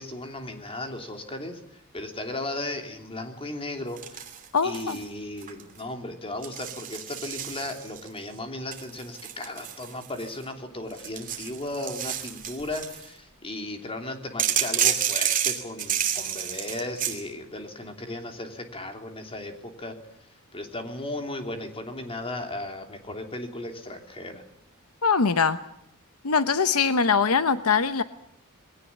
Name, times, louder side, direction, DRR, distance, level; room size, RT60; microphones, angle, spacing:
voice 1, 0.0-4.2 4.6-20.0 20.5-24.4, left 1 dB, 25° left, 5 dB, 3.0 m, -36 dB
sound 1, 4.0-5.0 5.4-5.8 6.4-8.1 8.7-10.4 10.9-13.1 14.4-17.2, right 9 dB, 40° right, 2.8 m, -29 dB
voice 2, 4.5-5.0 25.0-25.6 26.2-28.0, left 5 dB, 70° left, 12 dB, 0.9 m, -22 dB
21.0 x 17.5 x 9.9 m, 0.76 s
head